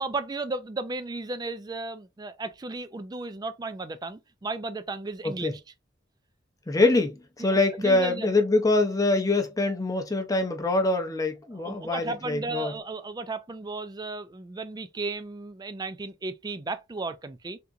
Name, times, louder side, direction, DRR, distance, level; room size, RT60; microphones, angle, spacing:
voice 1, 0.0-5.6 7.4-7.5 7.8-8.3 11.5-17.6, right 3 dB, 20° right, 0.3 m, -34 dB
voice 2, 5.2-5.5 6.7-12.7, left 2 dB, 20° left, 0.6 m, -24 dB
3.6 x 2.8 x 2.4 m
head